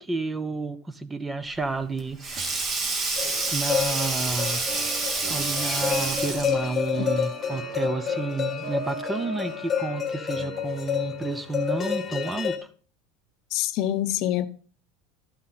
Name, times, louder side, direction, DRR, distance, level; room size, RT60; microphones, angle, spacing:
voice 1, 0.0-2.6 3.5-12.6, right 3 dB, 10° right, 0.5 m, -31 dB
Sink (filling or washing), 1.6-6.7, right 3 dB, 30° right, 1.3 m, -28 dB
sound 1, 3.2-12.6, left 8 dB, 20° left, 1.4 m, -30 dB
sound 2, 4.7-12.3, right 3 dB, 85° right, 1.9 m, -39 dB
voice 2, 13.5-14.5, left 13 dB, 55° left, 0.6 m, -25 dB
11.5 x 5.6 x 4.0 m
supercardioid pair, 140°, 0 cm